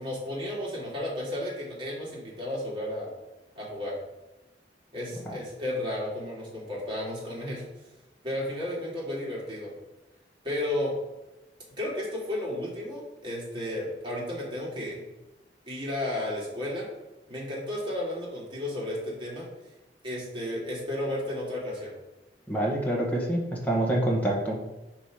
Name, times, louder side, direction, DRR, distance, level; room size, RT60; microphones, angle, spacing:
voice 1, 0.0-3.1 3.6-3.9 4.9-7.9 8.2-9.7 10.4-10.9 11.8-15.0 15.7-16.9 17.3-19.5 20.0-21.9, left 1 dB, 30° right, -5 dB, 2.3 m, -33 dB
voice 2, 22.5-24.6, right 1 dB, 10° left, -4 dB, 1.3 m, -26 dB
5.1 x 4.5 x 4.9 m, 1.0 s
head